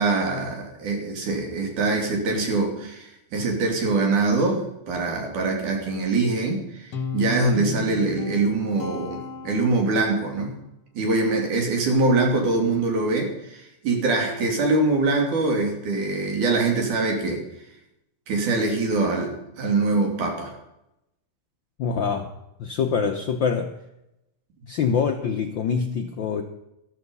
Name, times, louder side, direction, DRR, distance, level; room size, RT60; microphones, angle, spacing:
voice 1, 0.0-10.5 11.0-17.4 18.3-20.5, right 3 dB, 90° right, 1 dB, 4.4 m, -23 dB
Guitar, 6.9-10.2, left 6 dB, 55° left, 2.2 m, -33 dB
voice 2, 21.8-22.3 22.6-23.7 24.7-26.4, left 6 dB, 70° left, 5 dB, 1.1 m, -25 dB
13.5 x 13.0 x 5.5 m, 0.86 s
omnidirectional pair, 3.4 m